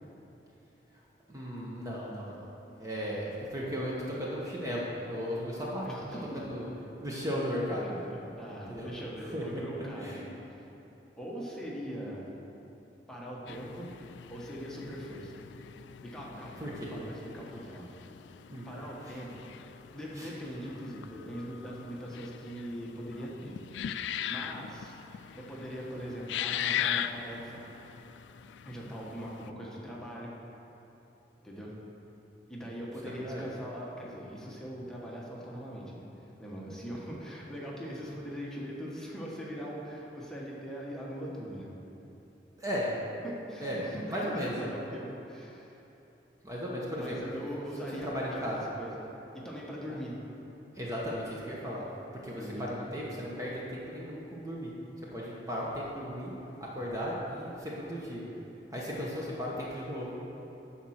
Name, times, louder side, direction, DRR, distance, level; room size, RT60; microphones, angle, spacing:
voice 1, 1.3-2.5 2.8-6.1 6.3-6.7 7.0-7.9 8.7-8.9 9.2-9.6 10.0-10.2 16.6-16.9 18.5-18.7 19.0-19.2 20.2-20.3 33.0-33.5 42.6-42.9 43.6-44.7 46.4-47.5 48.0-48.6 50.7-51.8 52.2-54.7 55.1-56.3 56.6-58.3 58.7-60.1, equal, 20° right, -5 dB, 1.0 m, -36 dB
voice 2, 5.8-6.4 7.8-10.3 11.2-12.3 13.1-13.9 14.3-15.3 16.0-17.9 18.6-19.5 19.9-23.5 24.3-25.0 25.4-27.7 28.6-30.4 31.4-31.8 32.5-36.0 36.4-41.7 43.2-45.7 47.0-49.1 49.3-50.2 52.3-52.6, equal, 5° left, -5 dB, 1.2 m, -41 dB
sound 1, 13.5-29.5, left 10 dB, 85° left, 0.3 m, -40 dB
10.0 x 4.3 x 6.4 m, 3.0 s
head